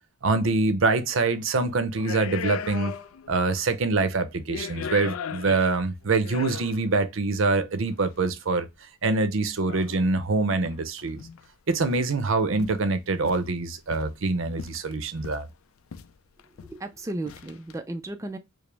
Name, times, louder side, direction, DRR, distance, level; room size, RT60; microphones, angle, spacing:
voice 1, 0.2-2.9 3.3-8.7 9.0-11.2 11.7-15.5, right 3 dB, 65° right, 0.6 m, -25 dB
sound 1, 1.2-1.4 1.9-3.4 3.6-3.7 4.3-6.9 7.9-8.0 9.7-10.2 10.7-10.8 11.0-11.5 11.7-12.2 12.6-12.8 13.2-14.2 14.6-15.5 15.9-16.1 16.4-16.8 17.3-17.7, left 7 dB, 80° left, 0.4 m, -37 dB
voice 2, 16.6-18.4, right 2 dB, 15° right, 0.4 m, -34 dB
4.9 x 2.0 x 3.3 m
head